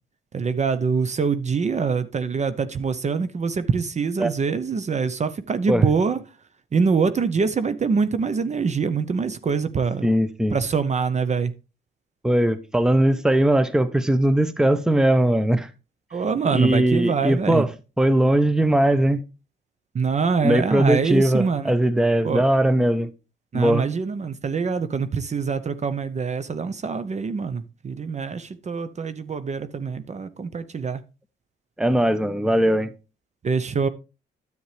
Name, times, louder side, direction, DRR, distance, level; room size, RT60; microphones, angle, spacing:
voice 1, 0.3-6.2 6.7-10.1 10.5-11.5 16.1-17.7 19.9-21.7 22.2-22.4 23.5-31.0 33.4-33.9, right 5 dB, 35° right, 0.7 m, -24 dB
voice 2, 10.0-10.6 12.2-15.7 16.5-17.7 18.0-19.2 20.4-23.1 23.5-23.8 31.8-32.9, right 1 dB, 5° right, 0.8 m, -20 dB
10.0 x 8.1 x 3.3 m
cardioid pair, 90°, 20 cm